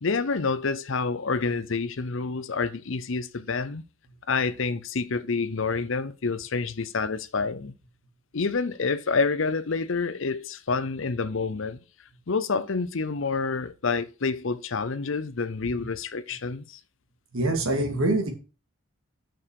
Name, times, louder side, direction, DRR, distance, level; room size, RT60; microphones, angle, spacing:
voice 1, 0.0-3.8 4.3-7.7 8.3-11.8 12.3-16.8, left 4 dB, 65° left, 0.7 m, -28 dB
voice 2, 17.3-18.3, right 2 dB, 75° right, 2.6 m, -25 dB
6.8 x 6.3 x 6.4 m
head